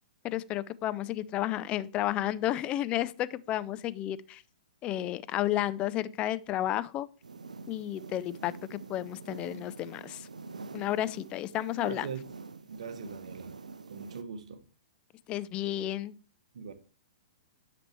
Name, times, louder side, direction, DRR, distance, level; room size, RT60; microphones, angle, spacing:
voice 1, 0.2-4.4 4.8-7.1 7.7-10.3 10.7-12.1 15.3-16.1, left 13 dB, 25° left, 0.4 m, -32 dB
sound 1, 7.2-14.2, right 4 dB, 75° right, 0.5 m, -46 dB
voice 2, 11.8-12.2 12.7-13.5 13.9-14.6 16.5-16.7, right 6 dB, 60° right, 1.0 m, -41 dB
10.0 x 6.0 x 3.2 m
figure-of-eight pair, 110°, 4 cm